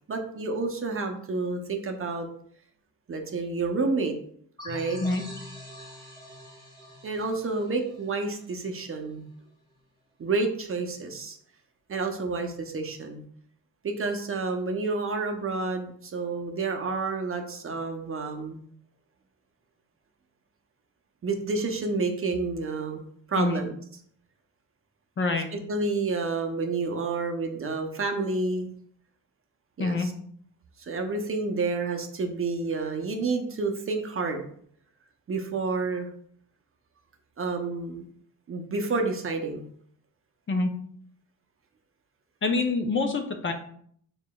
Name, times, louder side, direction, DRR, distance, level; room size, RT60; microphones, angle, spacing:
voice 1, 0.1-2.3 3.1-4.2 4.6-5.0 7.0-9.2 10.2-11.4 11.9-13.2 13.8-18.6 21.2-23.0 23.3-23.7 25.5-28.7 29.8-30.1 30.8-34.4 35.3-36.1 37.4-38.0 38.5-39.6, right 3 dB, 35° right, 4 dB, 0.7 m, -29 dB
sound 1, 4.6-9.0, left 1 dB, 10° left, 1.5 m, -45 dB
voice 2, 25.2-25.5 29.8-30.1 40.5-40.7 42.4-43.5, left 3 dB, 30° left, 5 dB, 0.6 m, -26 dB
4.8 x 3.9 x 2.3 m, 0.62 s
cardioid pair, 85°, 40 cm